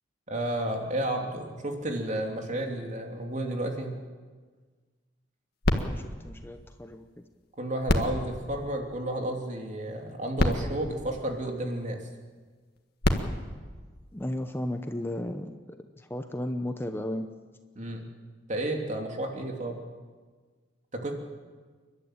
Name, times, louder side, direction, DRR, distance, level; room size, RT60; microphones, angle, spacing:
voice 1, 0.3-4.0 7.6-12.0 17.8-18.1 18.5-19.8 20.9-21.1, right 1 dB, 40° right, 2 dB, 3.0 m, -32 dB
sound 1, 5.6-7.3 7.8-9.4 10.1-10.2 10.4-11.9 12.8-14.6 15.3-15.4, left 1 dB, 55° left, 1.8 m, -31 dB
voice 2, 5.7-7.1 14.1-15.5 16.0-17.3, left 1 dB, 10° left, 7 dB, 0.9 m, -34 dB
29.5 x 12.0 x 9.0 m, 1.5 s
head